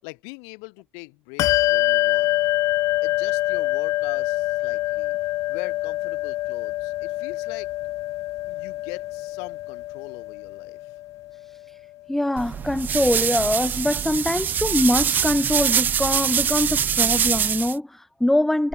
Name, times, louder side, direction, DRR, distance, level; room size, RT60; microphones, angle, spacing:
voice 1, 0.0-2.4 3.0-5.1 5.5-7.7 8.4-10.9, left 40 dB or more, 85° left, 7.4 m, -41 dB
Bell, 1.4-11.4, left 17 dB, 65° left, 1.9 m, -25 dB
voice 2, 12.1-18.7, left 1 dB, 5° left, 0.7 m, -23 dB
sound 1, 12.4-17.7, right 8 dB, 30° right, 0.4 m, -23 dB
cardioid pair, 125°, 6 cm